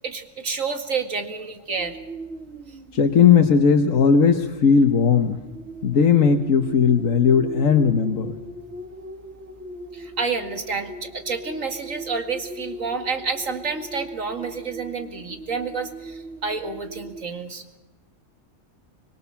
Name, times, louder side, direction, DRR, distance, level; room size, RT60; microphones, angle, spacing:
voice 1, 0.0-2.0 9.9-17.8, right 5 dB, 85° right, 6 dB, 2.6 m, -29 dB
sound 1, 1.8-17.2, right 2 dB, 60° right, 1.9 m, -39 dB
voice 2, 2.9-5.4 5.8-8.3, left 6 dB, 90° left, 5 dB, 1.6 m, -17 dB
26.0 x 21.5 x 5.9 m, 1.1 s
omnidirectional pair, 1.3 m